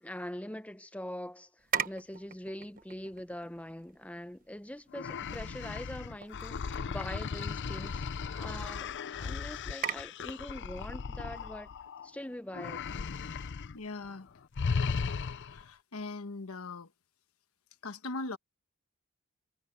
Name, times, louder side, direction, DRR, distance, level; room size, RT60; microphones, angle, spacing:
voice 1, 0.0-8.1 8.3-11.7 12.0-12.8, left 1 dB, 5° left, 0.9 m, -43 dB
sound 1, 1.6-13.6, right 8 dB, 40° right, 0.9 m, -43 dB
sound 2, 4.9-12.1 12.5-13.8 14.0-14.2 14.5-15.7, left 5 dB, 55° left, 0.6 m, -36 dB
voice 2, 13.7-14.3 15.5-16.9 17.8-18.4, left 3 dB, 70° left, 1.2 m, -40 dB
head